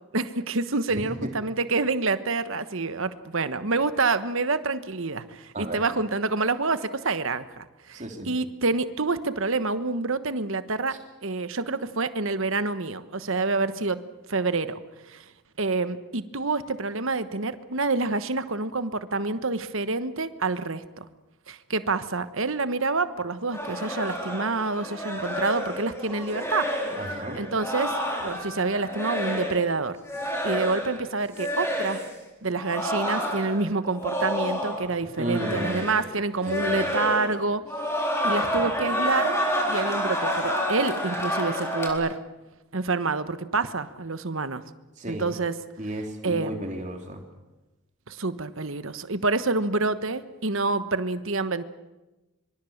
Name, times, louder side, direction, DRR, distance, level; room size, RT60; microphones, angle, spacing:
voice 1, 0.1-14.0 14.3-14.8 15.1-15.2 15.6-21.1 21.5-26.7 27.3-27.9 28.2-30.0 30.4-32.0 32.4-37.6 38.0-39.3 39.7-42.2 42.7-44.6 45.1-45.5 46.2-46.6 48.1-51.6, right 3 dB, 60° right, 12 dB, 1.2 m, -27 dB
voice 2, 0.9-1.3 5.5-5.8 7.9-8.3 10.9-11.0 26.9-27.4 35.2-35.9 36.4-36.9 38.5-38.6 45.0-45.2 45.8-47.2, right 1 dB, 35° right, 3 dB, 3.4 m, -33 dB
sound 1, 23.5-29.7 30.1-31.0 31.3-32.1 32.6-34.9 35.2-36.1 36.4-37.4 37.7-41.9, equal, 10° left, 4.0 m, -29 dB
24.5 x 24.0 x 7.2 m, 1.1 s
head